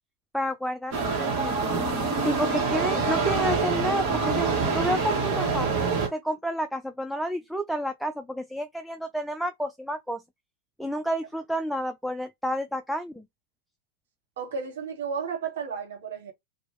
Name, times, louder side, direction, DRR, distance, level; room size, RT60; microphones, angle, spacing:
voice 1, 0.3-1.8 2.2-4.5 4.7-5.7 6.1-10.2 10.8-13.2, equal, ahead, 0.3 m, -30 dB
sound 1, 0.9-6.1, right 4 dB, 40° right, 1.5 m, -26 dB
voice 2, 14.4-16.3, right 6 dB, 60° right, 1.3 m, -33 dB
2.9 x 2.6 x 3.0 m
figure-of-eight pair, 90°, 0 cm